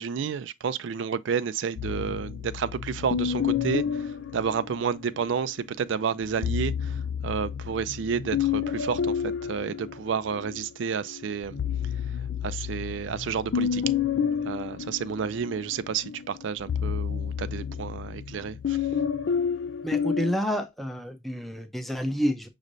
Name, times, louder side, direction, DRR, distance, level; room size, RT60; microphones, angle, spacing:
voice 1, 0.0-11.6 12.4-13.8 14.4-18.8, right 6 dB, 85° right, 0.4 m, -30 dB
sound 1, 1.8-5.3 6.2-10.7 11.1-20.4, left 7 dB, 70° left, 0.4 m, -30 dB
voice 2, 19.8-22.5, equal, ahead, 0.5 m, -29 dB
6.2 x 3.1 x 2.6 m
head